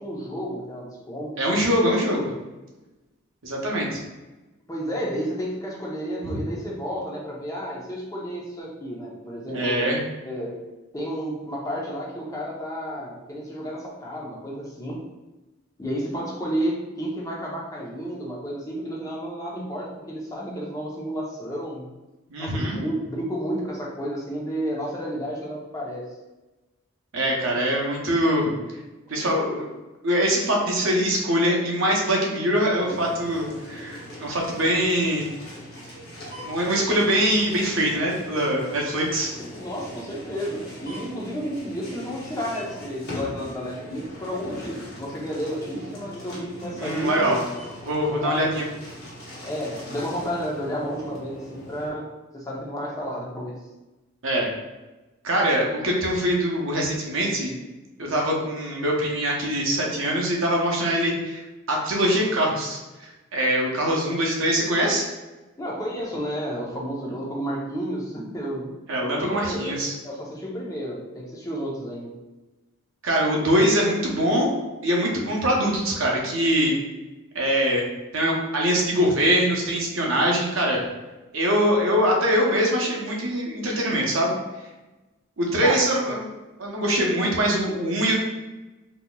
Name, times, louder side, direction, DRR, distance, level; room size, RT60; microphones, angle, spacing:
voice 1, 0.0-1.3 4.7-9.9 10.2-10.6 10.9-15.0 15.8-21.9 22.4-26.0 39.6-47.4 48.1-48.4 49.4-52.1 52.3-53.6 65.6-68.8 69.1-69.7 70.0-72.1 85.6-85.9, equal, 15° left, -3 dB, 0.7 m, -31 dB
voice 2, 1.4-2.3 3.4-4.0 6.2-6.4 9.5-10.0 22.3-22.8 27.1-28.5 29.1-29.7 30.0-35.3 36.4-39.3 46.8-47.4 47.8-48.6 54.2-54.5 55.2-57.5 58.0-61.4 61.7-62.8 63.3-65.1 68.9-69.9 73.0-74.5 74.8-76.8 77.3-77.8 78.1-80.8 81.3-84.3 85.4-86.2 86.6-88.2, equal, 70° right, -1 dB, 0.8 m, -23 dB
sound 1, 32.8-51.9, left 1 dB, 50° left, 1.1 m, -40 dB
4.0 x 2.8 x 2.3 m, 1.1 s
head